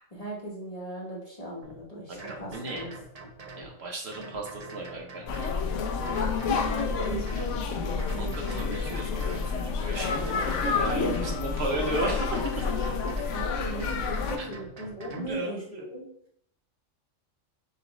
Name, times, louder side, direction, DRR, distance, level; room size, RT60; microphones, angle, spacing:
voice 1, 0.1-2.9 5.6-5.7 6.4-8.6 13.3-16.1, equal, 30° left, -4 dB, 0.9 m, -37 dB
sound 1, 1.6-1.8 2.2-3.7 4.1-5.6 6.1-7.6 8.0-9.5 9.9-11.4 11.9-13.4 13.8-15.3, right 3 dB, 45° right, 0.5 m, -44 dB
voice 2, 2.1-2.9 3.6-5.3 8.1-12.6 14.4-14.5 15.1-15.8, right 2 dB, 60° right, 1 dB, 1.0 m, -35 dB
sound 2, 5.3-14.4, left 5 dB, 70° left, 0.9 m, -29 dB
6.7 x 2.5 x 3.0 m, 0.69 s
omnidirectional pair, 1.3 m